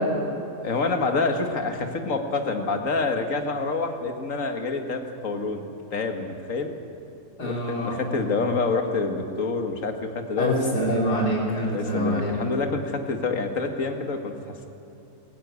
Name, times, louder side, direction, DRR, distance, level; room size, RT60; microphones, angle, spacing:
voice 1, 0.6-6.7 7.4-10.6 11.7-14.7, left 3 dB, 55° left, 5 dB, 2.1 m, -27 dB
voice 2, 7.4-8.0 10.4-12.3, equal, 75° left, -3 dB, 3.9 m, -25 dB
22.5 x 16.0 x 9.6 m, 2.9 s
omnidirectional pair, 1.7 m